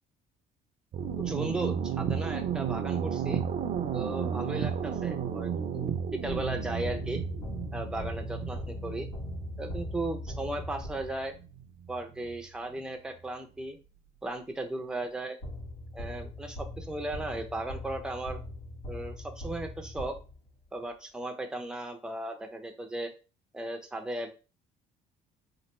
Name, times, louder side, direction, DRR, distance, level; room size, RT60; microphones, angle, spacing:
sound 1, 0.9-12.4, right 8 dB, 50° right, 0.5 m, -33 dB
voice 1, 1.2-3.4 3.9-5.9 6.2-7.2 7.7-9.1 9.6-11.3 11.9-13.8 14.2-15.4 15.9-18.4 18.9-20.2 20.7-23.1 23.5-24.3, right 1 dB, 5° right, 4 dB, 0.5 m, -36 dB
sound 2, 6.3-11.4 15.4-20.6, left 1 dB, 90° left, 1.6 m, -40 dB
3.2 x 2.4 x 3.0 m, 0.33 s
cardioid pair, 110°, 17 cm